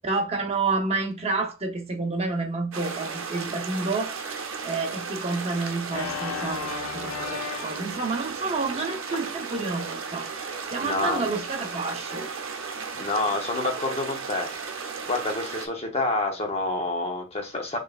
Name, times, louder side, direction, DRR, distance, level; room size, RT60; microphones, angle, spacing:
voice 1, 0.0-12.3, right 3 dB, 30° right, 0.8 m, -29 dB
sound 1, 2.7-15.7, right 5 dB, 65° right, 0.7 m, -35 dB
Organ, 5.9-10.7, left 8 dB, 80° left, 0.4 m, -38 dB
voice 2, 10.8-11.2 12.9-17.8, left 2 dB, 30° left, 0.8 m, -28 dB
4.5 x 3.2 x 2.4 m
head